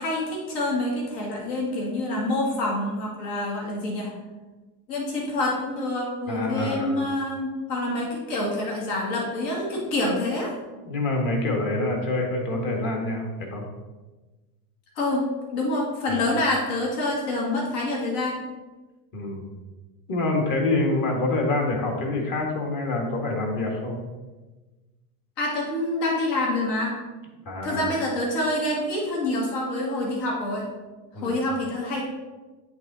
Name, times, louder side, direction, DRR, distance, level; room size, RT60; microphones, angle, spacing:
voice 1, 0.0-4.1 4.9-10.5 15.0-15.3 15.5-18.4 25.4-26.9 27.6-30.7 31.2-32.0, left 1 dB, 75° left, -3 dB, 2.1 m, -27 dB
voice 2, 6.3-7.0 10.8-13.7 16.1-16.3 19.1-19.5 20.1-24.0 27.5-27.9 31.1-31.3, left 2 dB, 40° left, 1 dB, 1.7 m, -26 dB
8.2 x 3.7 x 4.0 m, 1.2 s
supercardioid pair, 115°, 49 cm